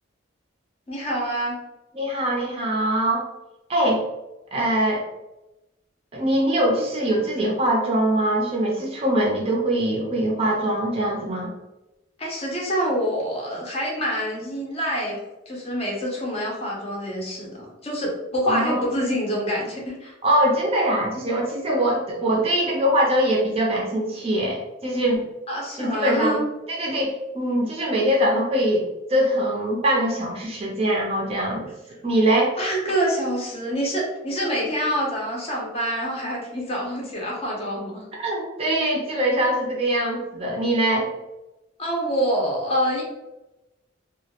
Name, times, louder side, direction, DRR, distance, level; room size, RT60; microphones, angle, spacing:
voice 1, 0.9-1.6 12.2-15.2 15.5-20.1 25.5-26.4 32.6-38.1 41.8-43.0, equal, 30° left, -2 dB, 0.6 m, -26 dB
voice 2, 1.9-3.3 3.7-4.0 4.5-5.0 6.1-11.5 18.5-18.8 20.2-25.3 25.8-26.4 26.7-28.8 29.1-31.7 32.0-32.5 38.2-41.1, right 1 dB, 30° right, -2 dB, 0.4 m, -22 dB
2.2 x 2.0 x 2.8 m, 0.98 s
head